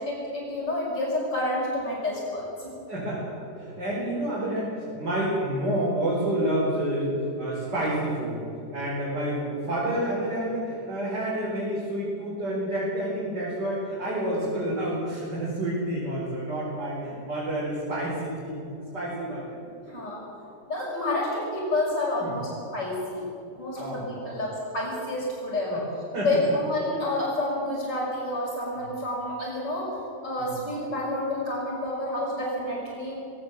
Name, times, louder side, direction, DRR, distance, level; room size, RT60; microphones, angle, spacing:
voice 1, 0.0-2.7 19.9-20.2 20.7-23.2 23.6-25.9 26.2-29.9 30.2-33.2, left 1 dB, 75° left, -4 dB, 6.6 m, -29 dB
voice 2, 2.9-8.4 8.7-19.4 19.9-20.0 22.2-22.4 23.8-24.4 25.7-25.8 26.1-26.4 30.4-30.5, right 1 dB, 75° right, -7 dB, 6.0 m, -29 dB
21.5 x 18.5 x 7.5 m, 2.6 s
omnidirectional pair, 1.9 m